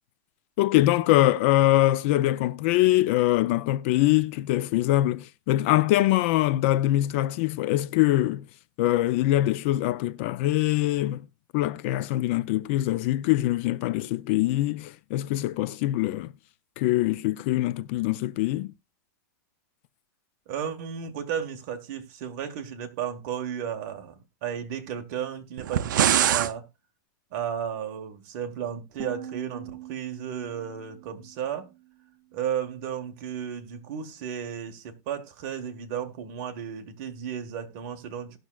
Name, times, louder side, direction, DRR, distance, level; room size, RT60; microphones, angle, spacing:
voice 1, 0.6-8.5 8.8-11.2 11.5-16.3 16.8-18.7, left 15 dB, 40° left, 0.4 m, -23 dB
voice 2, 20.5-26.7 27.3-31.7 32.3-38.4, right 8 dB, 45° right, 1.4 m, -34 dB
sound 1, 25.6-26.5, right 11 dB, 75° right, 0.6 m, -22 dB
sound 2, 29.0-32.0, right 8 dB, 20° right, 0.9 m, -42 dB
18.0 x 6.2 x 2.3 m
supercardioid pair, 160°, 10 cm